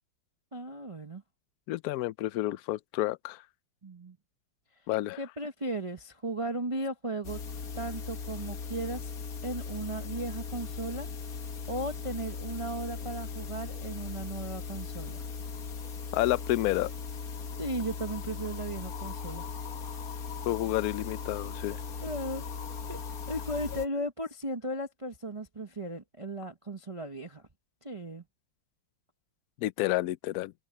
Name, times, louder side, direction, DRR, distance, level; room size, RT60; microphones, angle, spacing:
voice 1, 0.5-1.2 3.8-4.2 5.2-7.4 7.7-9.1 9.4-11.4 11.7-15.2 17.6-19.4 22.0-22.4 22.9-23.0 23.3-27.4 27.8-28.2, right 1 dB, 25° right, 0.8 m, -36 dB
voice 2, 1.7-3.4 4.9-5.2 16.1-16.9 20.5-21.8 29.6-30.5, left 16 dB, 85° left, 0.8 m, -30 dB
sound 1, 7.2-23.9, left 5 dB, 50° left, 1.7 m, -38 dB
omnidirectional pair, 2.1 m